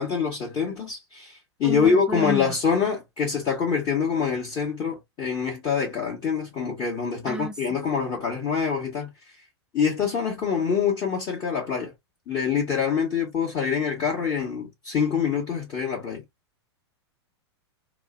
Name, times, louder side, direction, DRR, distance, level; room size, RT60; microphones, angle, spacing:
voice 1, 0.0-9.1 9.7-11.9 12.3-16.2, left 6 dB, 30° left, 1.1 m, -25 dB
voice 2, 1.6-2.5 7.3-7.5, equal, 5° right, 0.6 m, -31 dB
2.4 x 2.1 x 2.4 m
figure-of-eight pair, 100°, 14 cm